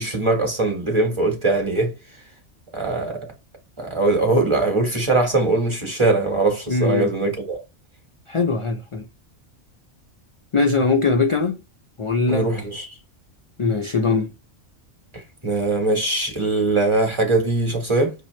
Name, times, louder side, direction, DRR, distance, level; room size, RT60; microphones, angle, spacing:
voice 1, 0.0-1.9 2.7-3.2 3.8-7.6 12.3-12.9 15.4-18.1, right 2 dB, 25° right, 1.3 m, -21 dB
voice 2, 6.7-7.1 8.3-9.0 10.5-11.6 12.0-12.5 13.6-14.3, left 4 dB, 50° left, 0.3 m, -21 dB
5.9 x 2.8 x 3.1 m
omnidirectional pair, 1.2 m